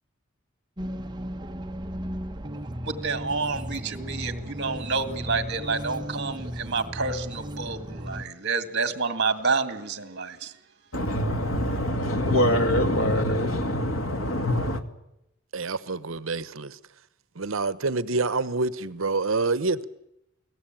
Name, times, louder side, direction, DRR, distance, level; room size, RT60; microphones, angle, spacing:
sound 1, 0.8-8.2, equal, 20° right, 1.1 m, -35 dB
voice 1, 2.8-10.5, right 4 dB, 55° right, 2.1 m, -29 dB
voice 2, 10.9-14.8, left 1 dB, 90° left, 2.2 m, -24 dB
voice 3, 15.5-16.8 17.3-19.8, right 3 dB, 75° right, 0.9 m, -27 dB
29.0 x 18.5 x 9.0 m
head